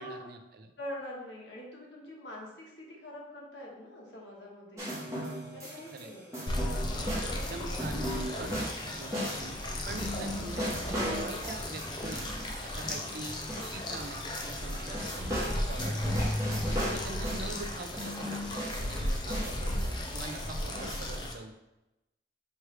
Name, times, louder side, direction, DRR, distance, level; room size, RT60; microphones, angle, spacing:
voice 1, 0.0-0.7 5.1-5.6 5.9-6.1 7.1-9.6 9.9-12.3 12.6-16.3 16.7-21.5, right 2 dB, 55° right, 6 dB, 0.4 m, -44 dB
voice 2, 0.8-4.9 5.5-6.4 6.8-8.1 12.9-13.3 16.9-17.2, left 1 dB, 90° left, -3 dB, 1.2 m, -45 dB
sound 1, 4.8-6.0 6.3-14.1 14.3-17.6 18.0-21.1, equal, 15° right, 1.2 m, -36 dB
sound 2, 6.5-21.3, left 1 dB, 25° left, 0.5 m, -36 dB
Boom, 10.0-15.6, equal, 35° right, 0.9 m, -50 dB
4.6 x 3.2 x 3.2 m, 0.95 s
head